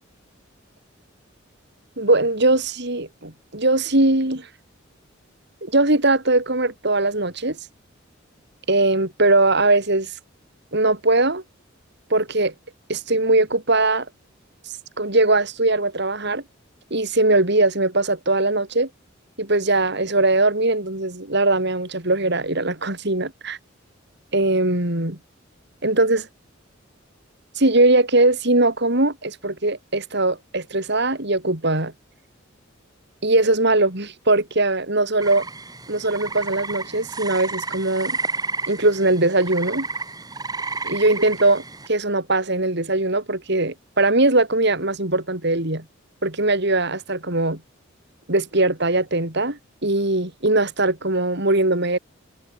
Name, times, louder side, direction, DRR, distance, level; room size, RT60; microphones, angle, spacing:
voice 1, 2.0-4.5 5.6-7.6 8.7-10.1 10.7-11.4 12.1-12.5 12.9-14.1 15.0-16.4 16.9-18.9 19.4-23.6 24.3-25.2 25.8-26.3 27.6-31.9 33.2-35.4 35.9-38.2 38.7-39.9 40.8-41.6 41.9-45.8 46.2-47.6 48.3-52.0, right 2 dB, 60° right, 4.6 m, -20 dB
sound 1, 35.2-41.9, right 3 dB, 20° right, 5.7 m, -31 dB
head